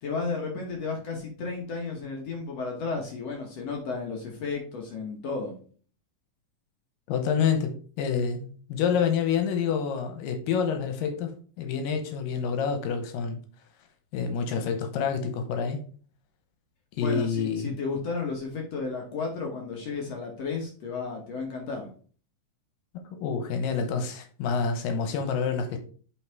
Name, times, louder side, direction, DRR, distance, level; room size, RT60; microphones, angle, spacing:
voice 1, 0.0-5.5 17.0-21.9, left 4 dB, 60° left, 1 dB, 2.0 m, -33 dB
voice 2, 7.1-13.4 14.1-15.8 17.0-17.7 22.9-25.8, left 6 dB, 85° left, 6 dB, 2.6 m, -28 dB
7.9 x 4.0 x 4.7 m, 0.42 s
omnidirectional pair, 3.9 m